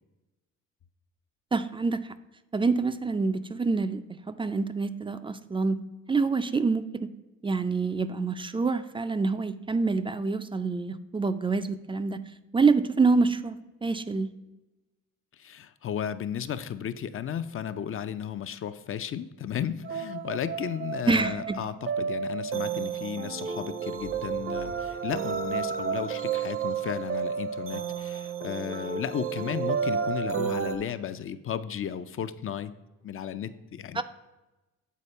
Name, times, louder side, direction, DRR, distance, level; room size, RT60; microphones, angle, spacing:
voice 1, 1.5-2.1 2.5-4.0 4.3-5.8 6.1-7.1 7.4-12.2 12.5-14.3 21.1-21.6 33.9-34.0, right 4 dB, 15° right, 11 dB, 0.4 m, -26 dB
voice 2, 15.4-32.7 33.0-34.0, left 9 dB, 45° left, 11 dB, 0.5 m, -34 dB
sound 1, 19.8-30.8, right 6 dB, 45° right, 0.8 m, -31 dB
sound 2, 23.9-26.4, right 1 dB, 85° right, 2.2 m, -48 dB
8.4 x 4.2 x 5.4 m, 1.1 s
cardioid pair, 90°, 30 cm